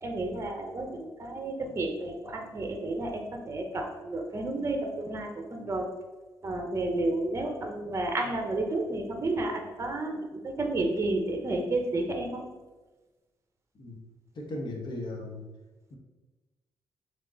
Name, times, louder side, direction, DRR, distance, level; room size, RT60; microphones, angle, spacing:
voice 1, 0.0-5.9 6.4-12.4, right 2 dB, 30° right, 3 dB, 0.8 m, -31 dB
voice 2, 14.3-15.4 15.9-16.0, left 1 dB, 55° left, 1 dB, 1.1 m, -37 dB
3.6 x 3.6 x 3.9 m, 1.2 s
cardioid pair, 95°, 9 cm